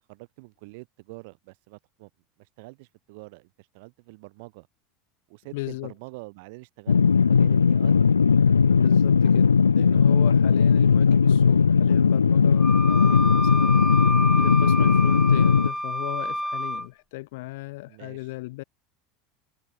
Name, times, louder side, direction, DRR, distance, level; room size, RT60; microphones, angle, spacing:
voice 1, 0.1-2.1 2.6-4.7 5.3-7.0 7.3-8.0 17.9-18.2, right 27 dB, 60° right, 7.9 m, -45 dB
voice 2, 5.5-5.9 8.4-18.6, left 21 dB, 60° left, 4.7 m, -36 dB
sound 1, 6.9-15.7, left 6 dB, 80° left, 0.9 m, -18 dB
Wind instrument woodwind instrument, 12.6-16.9, equal, ahead, 3.1 m, -28 dB
figure-of-eight pair, 75°, 0 cm